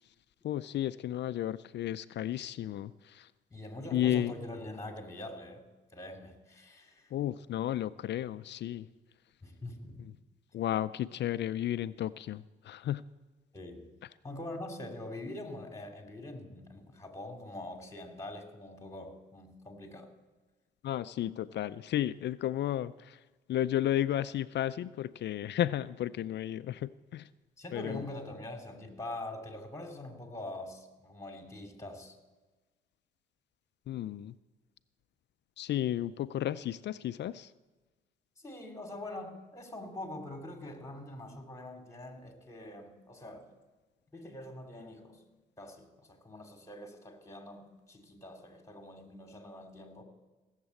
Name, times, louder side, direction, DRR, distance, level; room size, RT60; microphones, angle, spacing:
voice 1, 0.4-3.3 3.9-4.3 7.1-8.9 10.0-10.1 10.5-13.0 20.8-23.2 23.5-27.3 27.7-28.1 33.9-34.4 35.6-37.5, left 12 dB, 60° left, 15 dB, 0.4 m, -33 dB
voice 2, 3.5-5.6 5.9-7.1 9.4-10.0 13.5-13.9 14.2-20.1 27.6-32.1 38.4-43.5 44.1-45.2 45.6-50.0, left 1 dB, 15° left, 4 dB, 2.7 m, -44 dB
17.0 x 7.4 x 8.2 m, 1.2 s
cardioid pair, 90°, 20 cm